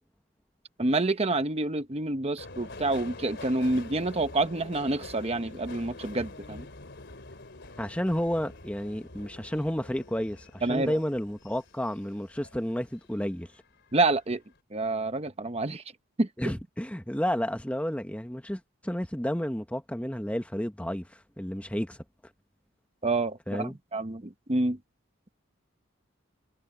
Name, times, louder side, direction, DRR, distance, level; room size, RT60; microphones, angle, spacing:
voice 1, 0.8-6.7 10.6-10.9 13.9-14.4 14.7-15.8 16.2-16.3 23.0-24.8, right 2 dB, 30° right, 1.0 m, -28 dB
Subway metro underground, 2.4-13.1 13.5-14.2 14.4-14.6, left 2 dB, 55° left, 3.5 m, -46 dB
voice 2, 7.8-13.5 16.4-22.0 23.5-23.8, equal, 5° left, 1.1 m, -31 dB
head